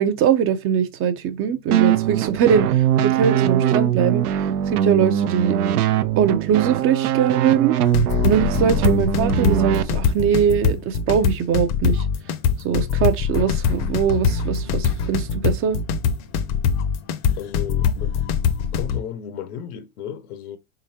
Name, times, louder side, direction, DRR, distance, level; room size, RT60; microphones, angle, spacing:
voice 1, 0.0-5.7 6.2-7.8 8.2-12.1 12.6-15.8, right 8 dB, 30° right, 0.5 m, -21 dB
sound 1, 1.7-9.8, right 10 dB, 85° right, 0.7 m, -21 dB
sound 2, 7.9-19.0, left 6 dB, 40° left, 0.6 m, -22 dB
voice 2, 17.3-18.2 18.7-20.6, left 9 dB, 80° left, 1.0 m, -34 dB
3.8 x 3.6 x 2.8 m
hypercardioid pair, 120°, 44 cm